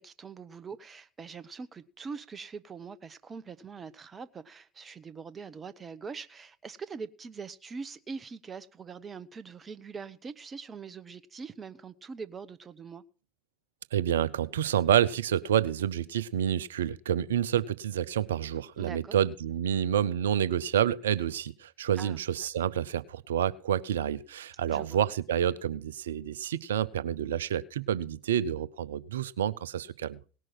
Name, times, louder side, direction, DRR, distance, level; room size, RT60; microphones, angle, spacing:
voice 1, 0.0-13.0 18.8-19.2 21.9-22.2 24.7-25.0, right 5 dB, 30° right, 0.9 m, -43 dB
voice 2, 13.9-30.2, right 10 dB, 75° right, 0.6 m, -28 dB
18.5 x 6.2 x 5.9 m
figure-of-eight pair, 70°, 0 cm